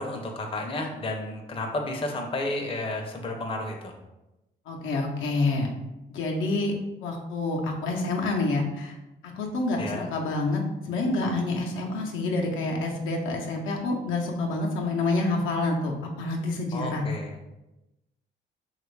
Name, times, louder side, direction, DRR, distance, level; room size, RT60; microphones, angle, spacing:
voice 1, 0.0-3.9 9.8-10.1 16.7-17.4, left 2 dB, 25° left, 2 dB, 0.5 m, -32 dB
voice 2, 4.7-5.7 6.1-6.7 7.0-8.9 9.4-10.6 10.9-17.1, left 2 dB, 80° left, 0 dB, 0.6 m, -27 dB
3.0 x 2.4 x 3.1 m, 0.96 s
cardioid pair, 90°, 20 cm